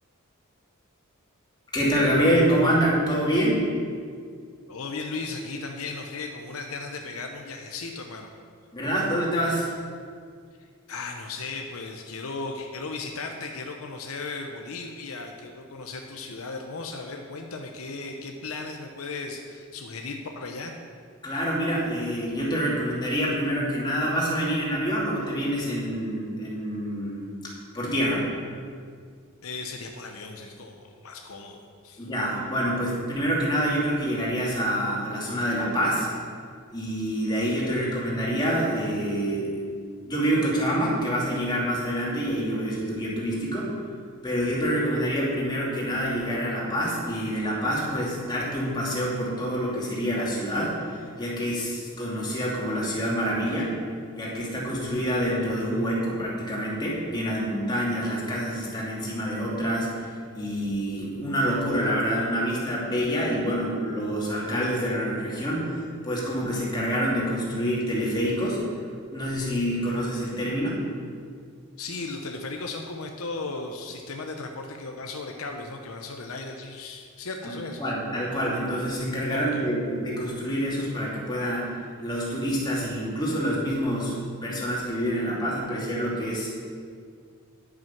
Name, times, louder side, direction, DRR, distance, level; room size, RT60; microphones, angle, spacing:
voice 1, 1.7-3.6 8.7-9.7 21.2-27.2 27.7-28.3 32.0-36.1 36.7-39.5 40.0-43.8 44.2-53.8 54.2-68.7 69.1-70.8 77.4-77.5 77.8-81.7 82.0-86.5, equal, 20° left, -5 dB, 2.7 m, -26 dB
voice 2, 4.7-8.3 10.9-20.7 29.4-32.1 71.8-77.9 79.3-79.7, left 3 dB, 75° left, 3 dB, 0.9 m, -36 dB
10.5 x 7.7 x 5.9 m, 2.1 s
head